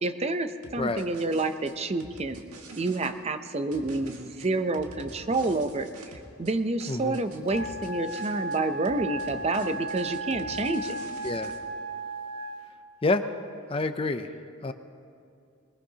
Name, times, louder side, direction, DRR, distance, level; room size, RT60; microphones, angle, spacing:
voice 1, 0.0-2.4 2.8-11.0, right 2 dB, 30° right, 9 dB, 0.6 m, -29 dB
sound 1, 0.6-3.1 3.7-6.5 6.8-8.6 8.8-11.6, right 2 dB, 80° right, 1.7 m, -46 dB
voice 2, 6.9-7.2 11.2-11.5 13.0-13.3 13.7-14.3 14.6-14.7, left 3 dB, 25° left, 9 dB, 0.5 m, -28 dB
Wind instrument woodwind instrument, 7.5-12.7, right 2 dB, 55° right, 1.2 m, -35 dB
22.0 x 21.0 x 2.9 m, 2.5 s
head